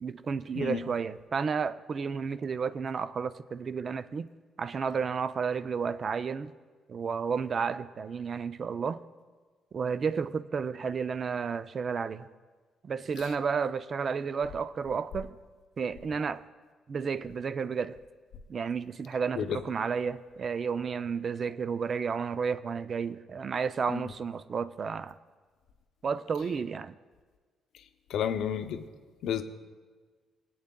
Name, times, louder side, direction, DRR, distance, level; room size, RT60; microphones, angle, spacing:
voice 1, 0.0-4.3 4.6-6.5 6.9-9.0 9.7-12.3 12.8-15.4 15.8-16.4 16.9-18.0 18.5-25.1 26.0-26.9, right 6 dB, 45° right, 0.3 m, -32 dB
voice 2, 28.1-28.8 29.2-29.4, left 9 dB, 80° left, 0.5 m, -31 dB
20.0 x 8.6 x 2.2 m
cardioid pair, 90°, 0 cm